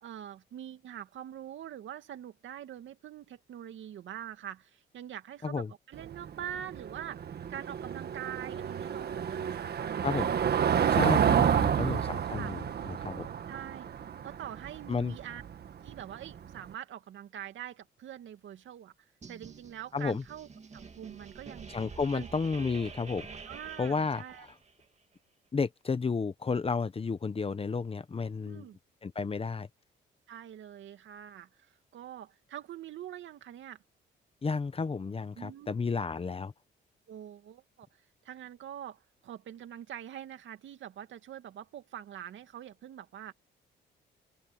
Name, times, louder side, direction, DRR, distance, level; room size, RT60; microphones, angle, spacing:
voice 1, 0.0-10.3 12.4-12.5 13.5-13.9 14.2-15.4 15.8-18.9 19.3-20.5 20.7-21.7 22.1-22.3 23.5-24.5 28.4-28.8 30.3-33.8 35.3-35.8 37.1-37.9 38.2-43.3, right 10 dB, 75° right, 2.5 m, -44 dB
Car passing by / Engine, 5.9-16.6, right 8 dB, 55° right, 1.6 m, -30 dB
voice 2, 10.9-13.3 14.9-15.1 19.9-20.2 21.7-23.3 23.8-24.5 25.5-28.6 29.0-29.7 34.4-36.5, left 4 dB, 30° left, 1.1 m, -32 dB
sound 1, 19.2-24.8, right 5 dB, 35° right, 2.6 m, -48 dB
open air
cardioid pair, 90°, 20 cm